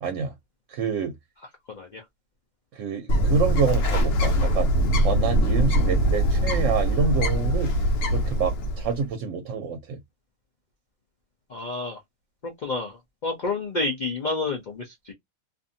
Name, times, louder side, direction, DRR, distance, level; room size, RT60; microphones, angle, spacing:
voice 1, 0.0-0.3 0.7-1.1 2.7-4.7 5.0-7.7 8.1-10.0, right 5 dB, 65° right, 1.0 m, -27 dB
Bird, 3.1-9.0, equal, 65° left, 1.1 m, -22 dB
voice 2, 11.5-12.0 12.6-12.9 13.2-15.1, left 3 dB, 50° left, 0.6 m, -29 dB
2.6 x 2.6 x 2.6 m
omnidirectional pair, 1.5 m